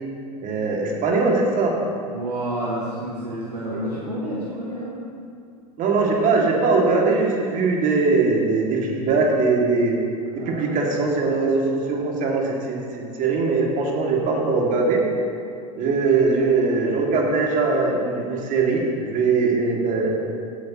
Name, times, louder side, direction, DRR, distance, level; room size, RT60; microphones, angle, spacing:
voice 1, 0.4-1.7 3.7-3.9 5.8-10.0 10.5-15.0 15.8-20.1, right 3 dB, 40° right, -1 dB, 2.2 m, -21 dB
voice 2, 2.1-5.0 10.4-10.9, right 1 dB, 85° right, -5 dB, 1.5 m, -30 dB
15.5 x 8.3 x 2.9 m, 2.3 s
figure-of-eight pair, 85°, 20 cm